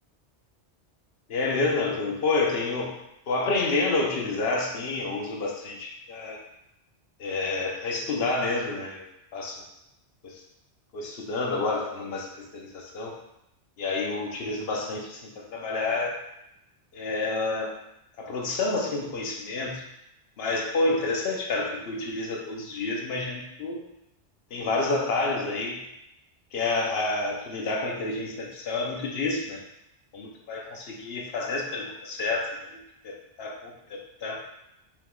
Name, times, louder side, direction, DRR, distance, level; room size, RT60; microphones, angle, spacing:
voice 1, 1.3-3.0 3.3-6.4 7.2-9.0 9.3-9.6 10.2-10.4 10.9-13.2 13.8-16.2 16.9-17.8 18.2-19.8 20.4-23.8 24.5-25.8 26.5-29.6 30.1-33.7 34.2-34.4, left 3 dB, 65° left, 0 dB, 0.9 m, -29 dB
4.5 x 3.8 x 2.3 m, 0.83 s
omnidirectional pair, 1.2 m